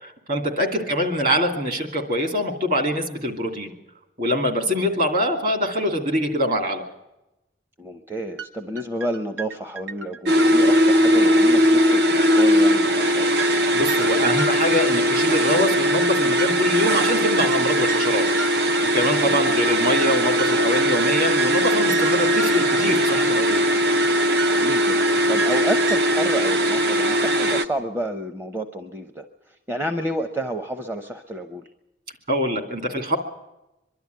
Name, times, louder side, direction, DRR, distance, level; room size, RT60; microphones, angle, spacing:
voice 1, 0.0-3.7 4.2-6.8 13.7-18.3 18.9-23.6 32.3-33.2, equal, 45° right, 5 dB, 2.7 m, -24 dB
voice 2, 7.8-13.3 19.2-19.4 24.5-31.7, right 1 dB, 15° right, 7 dB, 0.7 m, -30 dB
sound 1, 8.4-8.5 8.8-11.2 11.5-11.6 12.0-12.1 12.4-12.5 12.8-15.2 15.5-15.6 16.0-19.2 19.5-19.6 20.0-26.0, right 5 dB, 85° right, 1.2 m, -33 dB
sound 2, 10.3-27.6, equal, 60° right, 0.9 m, -19 dB
24.0 x 12.0 x 9.4 m, 0.93 s
head